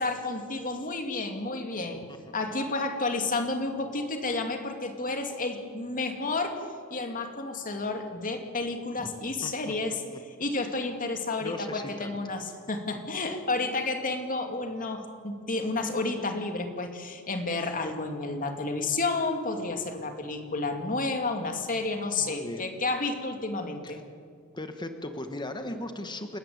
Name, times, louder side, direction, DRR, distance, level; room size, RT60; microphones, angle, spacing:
voice 1, 0.0-2.0 2.3-6.6 6.9-10.0 10.4-24.0, left 3 dB, 40° left, 5 dB, 2.6 m, -31 dB
voice 2, 9.4-9.7 11.4-12.2 22.2-22.7 23.8-24.0 24.5-26.4, left 1 dB, 20° left, 7 dB, 1.6 m, -38 dB
29.5 x 14.0 x 9.5 m, 2.2 s
head